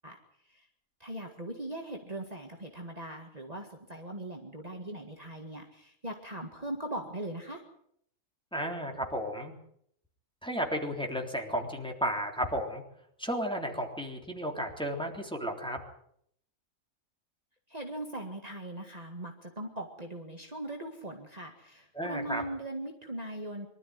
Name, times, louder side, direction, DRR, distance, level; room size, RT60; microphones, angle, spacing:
voice 1, 1.0-7.6 17.7-23.7, right 1 dB, 30° right, 1 dB, 2.1 m, -40 dB
voice 2, 8.5-9.5 10.4-12.8 13.2-15.8 21.9-22.4, equal, 5° left, 1 dB, 3.5 m, -33 dB
24.0 x 13.0 x 9.6 m, 0.71 s
omnidirectional pair, 1.4 m